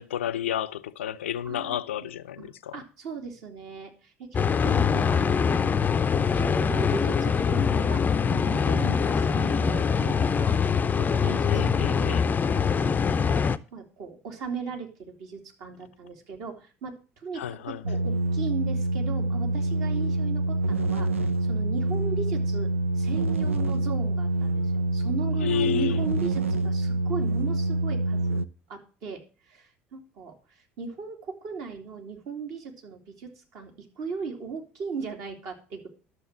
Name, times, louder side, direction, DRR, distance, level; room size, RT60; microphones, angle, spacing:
voice 1, 0.0-2.8 11.5-12.3 17.3-17.9 25.4-26.0, left 10 dB, 75° left, 0.5 m, -31 dB
voice 2, 1.4-1.8 2.4-5.7 6.3-10.6 11.0-12.2 12.5-13.0 13.7-21.1 21.4-22.7 22.9-28.4 28.7-35.9, right 5 dB, 55° right, 2.8 m, -37 dB
sound 1, 4.3-13.6, left 6 dB, 25° left, 0.6 m, -23 dB
sound 2, 17.8-28.5, right 2 dB, 85° right, 0.4 m, -26 dB
11.5 x 7.0 x 6.2 m
figure-of-eight pair, 60°, 7 cm